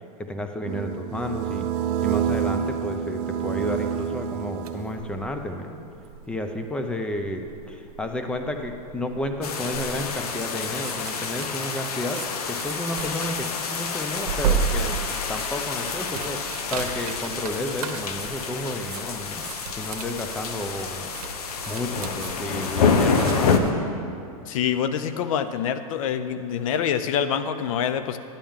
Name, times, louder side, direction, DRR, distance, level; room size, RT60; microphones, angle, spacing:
voice 1, 0.2-1.7 2.0-5.8 6.3-19.4 19.8-21.1 21.7-23.6, left 1 dB, 5° left, 6 dB, 0.5 m, -31 dB
sound 1, 0.6-5.3, right 9 dB, 45° right, 0.5 m, -28 dB
sound 2, 4.3-23.7, right 6 dB, 75° right, 0.9 m, -35 dB
sound 3, 9.4-23.6, left 5 dB, 85° left, 0.9 m, -28 dB
voice 2, 24.5-28.2, left 8 dB, 65° left, 11 dB, 0.5 m, -26 dB
11.5 x 8.7 x 3.6 m, 2.5 s
supercardioid pair, 140°, 19 cm